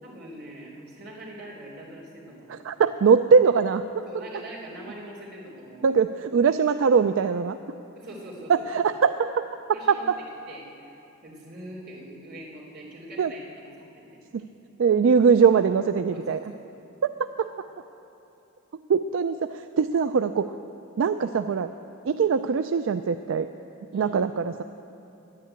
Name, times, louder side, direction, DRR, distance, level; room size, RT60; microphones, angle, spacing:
voice 1, 0.0-2.7 4.1-5.9 8.0-8.7 9.7-10.1 10.5-11.0 11.2-13.4 13.8-14.2 16.1-16.6 23.9-24.2, right 1 dB, 50° right, -5 dB, 3.7 m, -42 dB
voice 2, 2.5-4.0 5.8-7.6 8.5-9.5 9.9-10.0 13.2-13.3 14.3-14.4 14.8-16.4 17.0-17.5 18.9-20.6 21.0-21.7 22.0-23.5 23.9-24.6, right 6 dB, 70° right, 10 dB, 0.4 m, -22 dB
11.0 x 10.0 x 8.7 m, 2.9 s
head